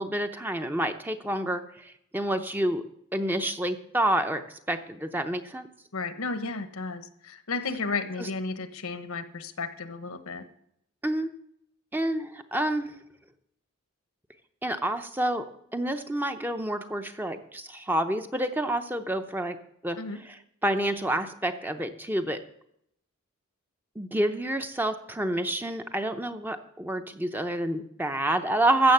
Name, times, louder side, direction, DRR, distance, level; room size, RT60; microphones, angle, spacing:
voice 1, 0.0-2.8 3.1-5.7 8.2-8.3 11.0-11.3 11.9-12.9 14.6-15.5 15.7-19.6 19.8-20.0 20.2-22.4 24.0-28.9, right 1 dB, 10° right, 7 dB, 0.6 m, -28 dB
voice 2, 5.9-10.4 20.0-20.2, left 4 dB, 85° left, 10 dB, 1.1 m, -33 dB
14.0 x 6.2 x 7.8 m, 0.73 s
head